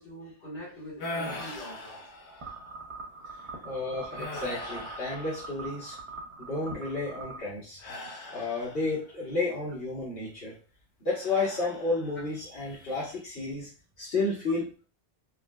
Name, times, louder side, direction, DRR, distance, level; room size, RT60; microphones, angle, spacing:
voice 1, 0.0-2.0, equal, 45° left, -7 dB, 1.8 m, -43 dB
sound 1, 1.0-2.7 3.3-3.5 4.1-6.0 7.8-9.1 11.2-12.3 12.7-13.2, left 2 dB, 90° left, 1.1 m, -41 dB
sound 2, 2.4-7.4, right 3 dB, 35° right, 0.6 m, -43 dB
voice 2, 3.6-6.0 6.5-7.8 8.3-10.5 11.0-13.7 14.0-14.8, left 3 dB, 65° left, -9 dB, 1.4 m, -31 dB
4.3 x 2.1 x 2.2 m, 0.36 s
omnidirectional pair, 1.1 m